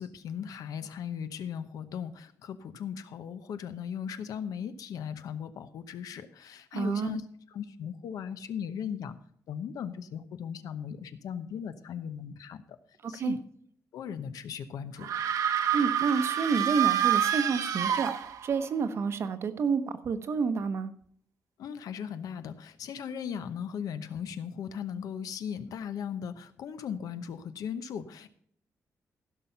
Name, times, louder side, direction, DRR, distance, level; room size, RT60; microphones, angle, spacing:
voice 1, 0.0-7.2 7.5-9.2 9.5-12.6 13.1-13.4 13.9-15.1 21.6-28.3, left 8 dB, 85° left, 11 dB, 0.9 m, -37 dB
voice 2, 6.7-7.2 13.0-13.4 15.7-20.9, right 5 dB, 45° right, 11 dB, 0.8 m, -29 dB
sound 1, 15.0-18.7, right 10 dB, 70° right, 1.0 m, -27 dB
15.5 x 6.1 x 5.5 m, 0.62 s
wide cardioid pair, 180°, 6 cm